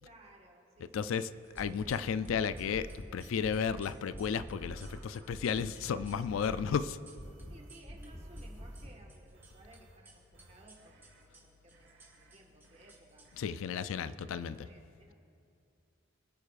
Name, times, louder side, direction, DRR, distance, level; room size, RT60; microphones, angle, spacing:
voice 1, 0.0-1.4 7.5-13.3 14.0-14.2 14.4-15.1, right 1 dB, 35° right, 0 dB, 1.4 m, -59 dB
voice 2, 0.9-1.3 1.6-7.0 13.4-14.7, left 7 dB, 90° left, 14 dB, 0.3 m, -33 dB
sound 1, 1.3-2.3 2.5-8.1 8.3-9.8 10.0-13.7, right 4 dB, 10° right, 1.9 m, -60 dB
sound 2, 1.6-2.0 2.3-3.1 3.4-3.8 4.1-5.0 5.3-5.7 6.0-6.9 7.2-7.6 7.9-9.0, equal, 30° left, 1.1 m, -46 dB
sound 3, 2.5-3.0 3.5-4.1 4.4-5.3 5.7-6.0 6.3-6.7 7.2-8.9 9.3-10.0 10.3-11.2 11.7-12.4 12.6-12.9 13.3-13.6, right 2 dB, 60° right, 1.3 m, -61 dB
22.5 x 9.3 x 2.5 m, 2.5 s
head